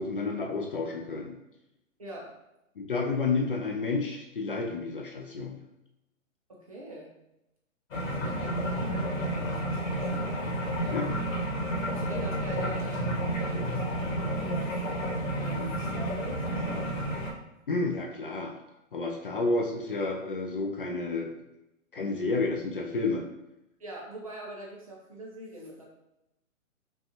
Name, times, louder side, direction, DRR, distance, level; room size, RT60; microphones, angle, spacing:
voice 1, 0.0-1.3 2.8-5.6 10.9-11.1 17.7-18.5 18.9-21.3 21.9-23.2, left 3 dB, 40° left, 2 dB, 0.4 m, -30 dB
voice 2, 2.0-2.3 6.5-7.1 7.9-10.9 11.9-15.1 15.4-16.8 23.8-25.8, right 1 dB, 25° right, -3 dB, 0.5 m, -44 dB
sound 1, 7.9-17.3, right 1 dB, 70° left, 1.3 m, -31 dB
5.3 x 2.3 x 2.8 m, 0.89 s
hypercardioid pair, 160°, 41 cm